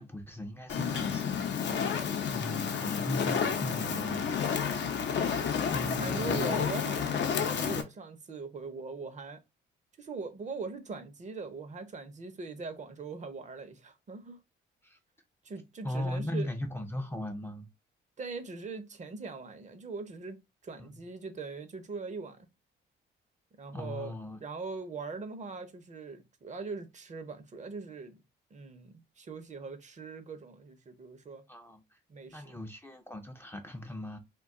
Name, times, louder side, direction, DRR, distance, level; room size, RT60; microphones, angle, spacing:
voice 1, 0.0-1.4 2.3-4.3 5.7-6.7 14.8-15.0 15.8-17.7 20.8-20.9 23.7-24.4 31.5-31.8 32.3-34.2, left 1 dB, 10° left, 0.5 m, -38 dB
Fire, 0.7-7.8, left 7 dB, 65° left, 0.7 m, -30 dB
voice 2, 5.8-9.4 10.0-14.4 15.4-16.5 18.2-22.4 23.6-24.1 24.4-28.2 28.5-31.4 32.1-32.6, right 4 dB, 35° right, 0.7 m, -41 dB
2.2 x 2.2 x 3.6 m
cardioid pair, 90°, 20 cm